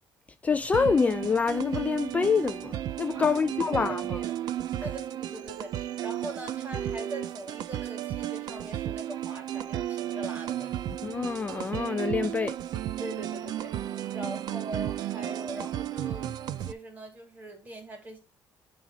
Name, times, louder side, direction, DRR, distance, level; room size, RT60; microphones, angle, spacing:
voice 1, 0.4-4.2 11.0-12.5, left 5 dB, 20° left, 0.3 m, -26 dB
sound 1, 0.7-16.7, right 12 dB, 65° right, 0.6 m, -34 dB
voice 2, 3.1-3.8 4.1-4.4 4.8-10.9 13.0-13.7 14.1-16.3 16.6-18.2, right 1 dB, 20° right, 2.4 m, -42 dB
9.9 x 3.3 x 5.2 m
cardioid pair, 160°, 7 cm